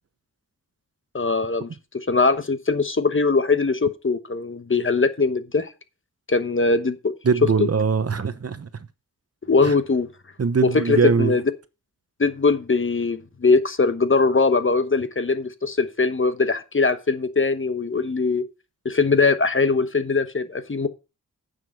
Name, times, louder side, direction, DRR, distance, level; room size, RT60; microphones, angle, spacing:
voice 1, 1.1-5.7 6.3-7.1 9.5-10.1 10.6-11.4 12.2-18.4 18.8-20.9, left 4 dB, 35° left, 1.1 m, -21 dB
voice 2, 7.2-8.7 9.6-9.7 10.4-11.3, right 5 dB, 45° right, 0.9 m, -21 dB
9.6 x 6.7 x 5.3 m
wide cardioid pair, 85°, 33 cm